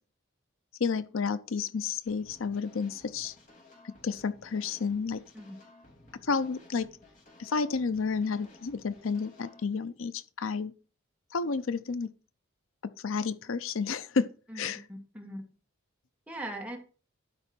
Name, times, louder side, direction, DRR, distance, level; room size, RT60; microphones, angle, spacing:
voice 1, 0.8-3.4 4.0-5.2 6.2-6.9 7.4-10.7 11.3-12.1 13.0-14.3 14.5-14.8, left 5 dB, 75° left, 0.6 m, -31 dB
sound 1, 2.1-9.6, left 2 dB, 40° left, 3.0 m, -56 dB
voice 2, 14.5-15.5 16.3-16.8, right 1 dB, 5° right, 2.0 m, -40 dB
12.0 x 5.4 x 4.4 m
head